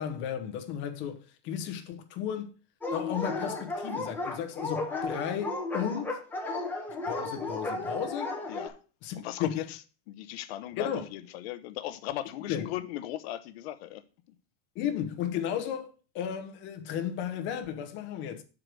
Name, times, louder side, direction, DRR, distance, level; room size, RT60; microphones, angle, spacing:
voice 1, 0.0-2.5 2.9-6.2 7.1-8.4 9.0-9.6 10.8-11.1 12.5-12.7 14.7-18.4, left 9 dB, 30° left, 0.9 m, -34 dB
Dog, 2.8-8.7, left 3 dB, 5° left, 1.1 m, -34 dB
voice 2, 8.5-8.8 9.1-9.8 10.1-14.0, left 13 dB, 60° left, 0.8 m, -37 dB
6.5 x 4.9 x 6.0 m
supercardioid pair, 170°, 36 cm